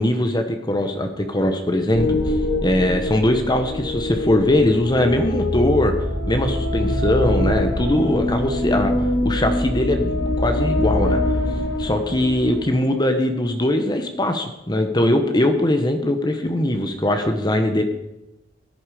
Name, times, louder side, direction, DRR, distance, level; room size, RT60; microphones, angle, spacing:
voice 1, 0.0-2.3 2.6-6.0 6.3-8.9 9.2-11.2 11.8-17.8, left 1 dB, 25° left, 6 dB, 1.1 m, -21 dB
sound 1, 1.9-12.8, left 1 dB, 65° left, 3.4 m, -23 dB
16.0 x 11.0 x 5.0 m, 0.94 s
head